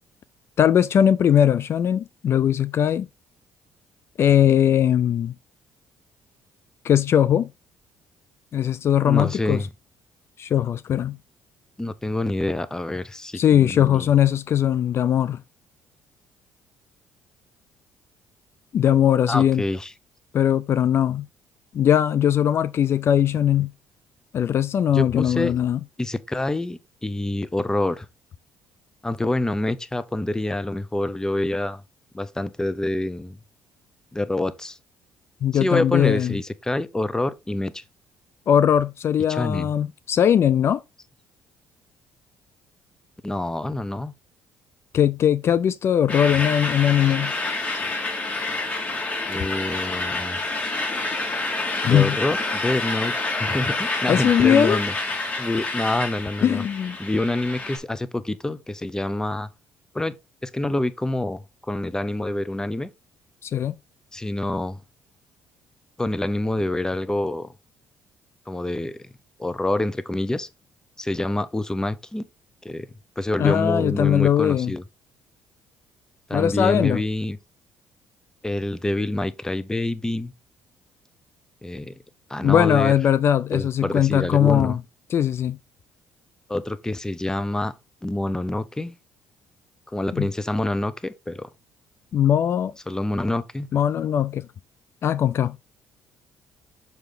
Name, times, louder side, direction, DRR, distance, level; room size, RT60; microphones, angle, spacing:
voice 1, 0.6-3.1 4.2-5.3 6.8-7.5 8.5-9.7 10.4-11.2 13.3-15.4 18.7-19.6 20.3-21.3 21.7-23.7 24.3-25.8 35.4-36.3 38.5-40.8 44.9-47.3 51.8-52.2 54.1-54.8 56.4-57.0 63.4-63.7 73.4-74.7 76.3-77.0 82.4-84.8 85.1-85.6 90.1-90.3 92.1-92.7 93.7-94.5 95.0-95.6, left 9 dB, 55° left, 0.4 m, -20 dB
voice 2, 9.0-9.7 11.8-14.1 19.3-19.9 24.9-25.5 26.0-28.1 29.0-31.8 32.1-33.4 34.1-34.8 35.5-37.8 39.3-39.7 43.2-44.1 49.3-50.4 51.8-53.1 53.4-54.9 55.4-56.6 57.0-59.5 59.9-60.1 60.4-62.9 64.1-64.8 66.0-67.5 68.5-69.0 69.4-70.5 71.0-72.2 72.6-72.9 73.2-74.8 76.3-77.4 78.4-80.3 81.6-81.9 82.3-82.9 83.5-84.8 86.5-87.7 88.0-88.9 89.9-91.5 92.9-93.7, left 1 dB, 10° left, 0.8 m, -26 dB
sound 1, 46.1-57.8, left 2 dB, 30° left, 4.1 m, -28 dB
6.5 x 4.9 x 3.7 m
supercardioid pair, 65°, 5 cm